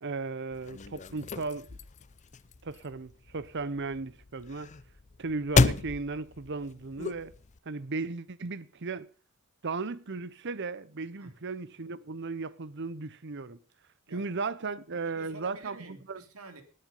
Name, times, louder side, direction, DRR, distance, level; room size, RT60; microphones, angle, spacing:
voice 1, 0.0-1.7 2.6-4.7 5.2-7.3 7.6-9.1 9.6-13.6 14.1-15.8 16.1-16.2, right 3 dB, 55° right, 0.8 m, -36 dB
sound 1, 0.5-7.6, left 4 dB, 35° left, 0.5 m, -32 dB
voice 2, 15.0-16.6, right 2 dB, 85° right, 2.7 m, -48 dB
19.5 x 7.8 x 5.4 m
head